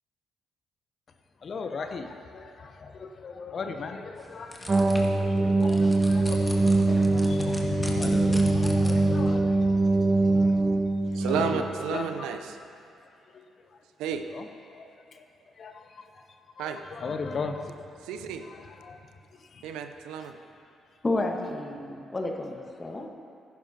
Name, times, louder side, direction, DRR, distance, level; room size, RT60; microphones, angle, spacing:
voice 1, 1.4-10.8 11.1-11.6 11.9-12.3 13.3-13.4 14.3-15.2 15.6-16.2 16.6-17.7 18.4-19.1 19.4-19.7 22.9-23.1, left 4 dB, 50° left, 6 dB, 0.7 m, -36 dB
sound 1, 4.2-9.2, left 1 dB, 15° left, 1.8 m, -42 dB
sound 2, 4.7-11.8, right 2 dB, 35° right, 0.8 m, -23 dB
voice 2, 11.1-12.6 14.0-14.3 16.6-16.8 18.0-18.5 19.6-20.4, right 7 dB, 75° right, 7 dB, 0.5 m, -32 dB
voice 3, 21.0-23.1, left 2 dB, 30° left, 2 dB, 1.3 m, -31 dB
15.0 x 10.5 x 2.8 m, 2.4 s
hypercardioid pair, 45°, 0 cm